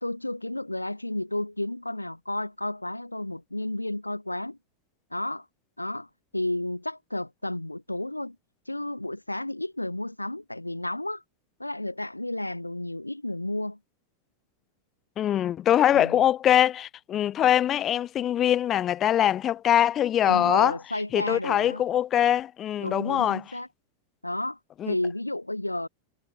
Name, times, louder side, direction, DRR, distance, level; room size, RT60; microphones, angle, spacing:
voice 1, 0.0-4.6 5.1-5.4 5.8-6.1 6.3-8.4 8.7-11.2 11.6-13.8 15.9-16.2 20.2-21.8 22.8-23.7 24.2-24.6 24.9-25.9, left 1 dB, 85° left, 1.0 m, -32 dB
voice 2, 15.2-20.8 21.1-23.4 24.8-24.9, left 11 dB, 30° left, 0.6 m, -23 dB
figure-of-eight pair, 90°, 0 cm